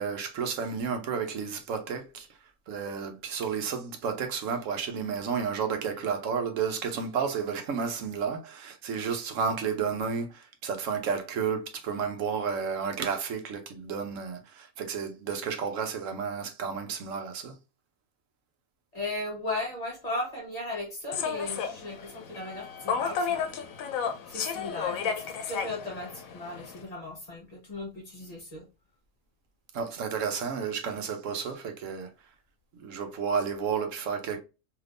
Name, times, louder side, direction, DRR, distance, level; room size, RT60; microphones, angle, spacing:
voice 1, 0.0-2.3 2.7-17.6 29.7-32.1 32.8-34.4, right 6 dB, 75° right, 1.0 m, -32 dB
voice 2, 18.9-23.5 24.3-28.6, left 2 dB, 30° left, 1.0 m, -36 dB
Human voice / Subway metro underground, 21.1-26.8, left 6 dB, 85° left, 1.0 m, -33 dB
3.4 x 2.8 x 2.4 m
omnidirectional pair, 1.4 m